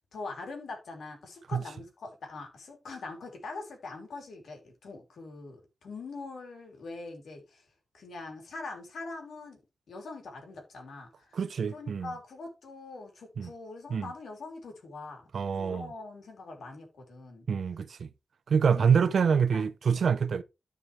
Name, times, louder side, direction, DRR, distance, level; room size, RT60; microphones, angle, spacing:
voice 1, 0.1-7.6 7.9-9.6 9.9-11.4 11.7-17.4 18.7-19.7, left 3 dB, 90° left, 3.1 m, -43 dB
voice 2, 11.3-12.1 13.4-13.5 13.9-14.1 15.3-15.9 17.5-18.1 18.5-20.4, right 6 dB, 70° right, 0.7 m, -26 dB
13.5 x 5.1 x 3.2 m
wide cardioid pair, 140°, 0 cm